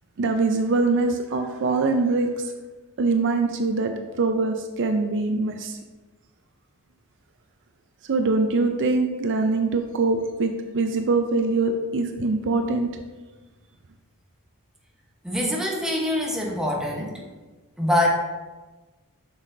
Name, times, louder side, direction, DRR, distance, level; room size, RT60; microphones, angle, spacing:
voice 1, 0.2-2.5 3.0-5.8 8.0-12.9, right 3 dB, 55° right, 6 dB, 0.5 m, -23 dB
voice 2, 15.2-17.2 17.8-18.1, left 1 dB, 5° right, -2 dB, 1.1 m, -24 dB
7.4 x 6.3 x 2.7 m, 1.2 s
head